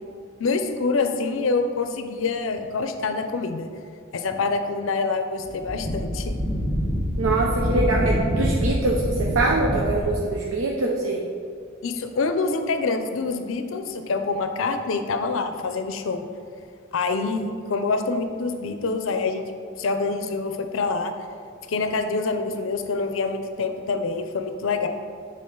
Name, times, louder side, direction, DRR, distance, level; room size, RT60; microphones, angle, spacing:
voice 1, 0.4-3.7 4.1-6.3 11.8-16.2 16.9-19.5 19.8-21.1 21.7-24.9, left 4 dB, 75° left, 7 dB, 0.5 m, -26 dB
Wind, 5.4-10.3, equal, 20° right, 1.5 m, -25 dB
voice 2, 7.2-11.3, right 2 dB, 80° right, -2 dB, 0.6 m, -24 dB
7.7 x 3.7 x 3.8 m, 2.3 s
head